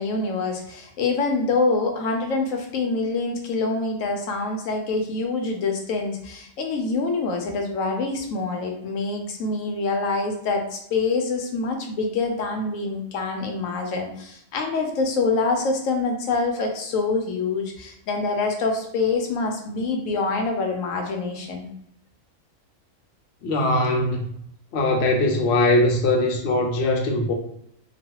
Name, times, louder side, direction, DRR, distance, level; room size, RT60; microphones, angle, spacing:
voice 1, 0.0-21.7, left 3 dB, 80° left, 1.0 m, -25 dB
voice 2, 23.4-24.3 24.7-27.3, left 2 dB, 60° left, 0.8 m, -21 dB
3.0 x 2.2 x 2.9 m
omnidirectional pair, 1.4 m